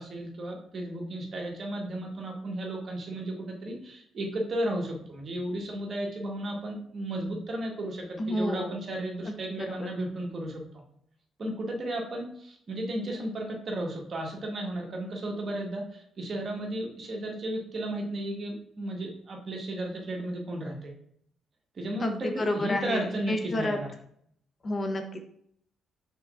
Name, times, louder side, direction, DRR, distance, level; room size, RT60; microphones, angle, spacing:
voice 1, 0.0-10.6 11.4-20.9 21.7-23.9, right 1 dB, 45° right, 0 dB, 1.2 m, -34 dB
voice 2, 8.2-8.8 9.3-9.9 22.0-23.8 24.6-25.2, left 1 dB, 35° left, 6 dB, 0.6 m, -30 dB
5.5 x 3.7 x 2.4 m, 0.68 s
cardioid pair, 90°, 0 cm